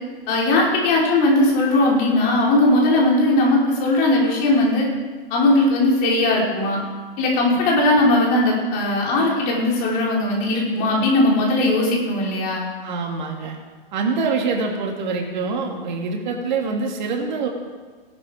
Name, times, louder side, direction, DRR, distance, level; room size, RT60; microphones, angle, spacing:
voice 1, 0.3-4.9 5.3-6.8 7.2-12.6, left 2 dB, 30° left, -3 dB, 4.6 m, -18 dB
voice 2, 12.8-13.6 13.9-17.5, right 4 dB, 50° right, 1 dB, 2.8 m, -25 dB
18.5 x 11.5 x 5.1 m, 1.4 s
hypercardioid pair, 145°, 29 cm